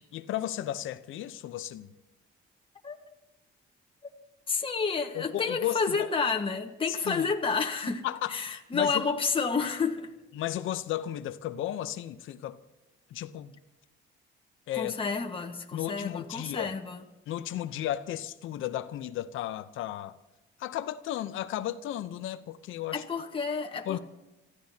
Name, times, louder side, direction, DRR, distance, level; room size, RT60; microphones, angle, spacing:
voice 1, 0.1-1.9 5.1-6.1 6.9-7.3 7.8-9.0 10.3-12.6 13.1-13.5 14.7-14.9 15.7-16.7 17.3-20.2 20.6-23.0 23.9-24.0, left 12 dB, 85° left, 0.8 m, -34 dB
voice 2, 4.5-10.1 14.7-17.0 22.9-24.0, left 5 dB, 25° left, 1.4 m, -30 dB
29.0 x 15.0 x 2.8 m
cardioid pair, 90°, 20 cm